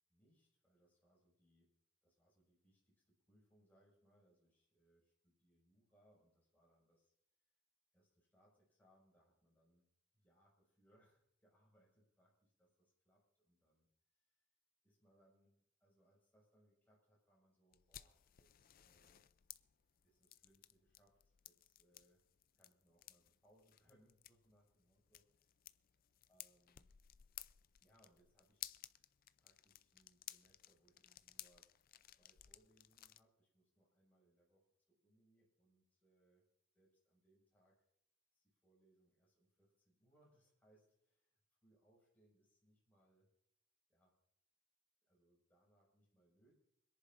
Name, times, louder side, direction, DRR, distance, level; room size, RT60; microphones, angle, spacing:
voice 1, 0.1-1.7 2.0-7.1 7.9-9.9 10.1-14.4 14.8-19.3 20.0-22.2 22.5-25.6 26.3-26.9 27.8-28.6 29.4-31.7 32.2-36.5 36.7-37.8 38.3-43.3 43.9-44.1 45.0-46.6, right 1 dB, 10° left, -4 dB, 5.8 m, -75 dB
sound 1, 17.7-33.2, left 13 dB, 40° left, 0.4 m, -58 dB
26.0 x 10.5 x 2.6 m, 0.78 s
head